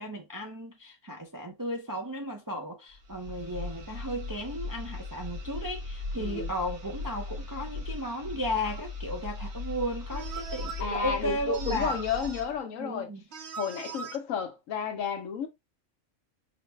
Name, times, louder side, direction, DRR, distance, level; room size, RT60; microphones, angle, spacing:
voice 1, 0.0-11.9 12.8-13.2, equal, 30° right, 0.3 m, -35 dB
sound 1, 2.9-12.6, left 3 dB, 85° right, 1.9 m, -38 dB
voice 2, 6.1-6.5 10.8-13.1 13.6-15.5, left 6 dB, 75° left, 1.2 m, -32 dB
sound 2, 8.5-8.9 10.1-10.8 11.5-12.5 13.3-14.2, right 7 dB, 60° right, 0.9 m, -41 dB
4.8 x 2.1 x 3.1 m
omnidirectional pair, 1.4 m